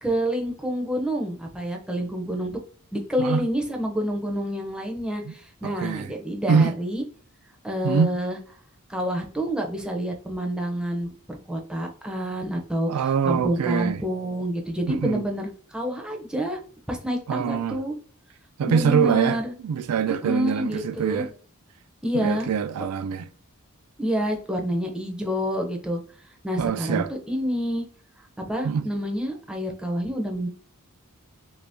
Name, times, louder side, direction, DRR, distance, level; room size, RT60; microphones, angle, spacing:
voice 1, 0.0-2.6 2.9-7.0 7.6-8.4 8.9-16.6 16.9-17.9 18.6-19.5 20.1-21.3 22.0-22.5 24.0-26.0 26.4-27.9 28.4-30.5, equal, 5° right, 0.5 m, -28 dB
voice 2, 5.6-6.1 6.5-6.7 7.8-8.1 12.9-14.0 14.9-15.3 17.3-17.8 18.6-19.4 19.6-21.3 22.1-23.3 26.6-27.1 28.6-28.9, right 7 dB, 85° right, 0.3 m, -24 dB
2.8 x 2.7 x 3.4 m
head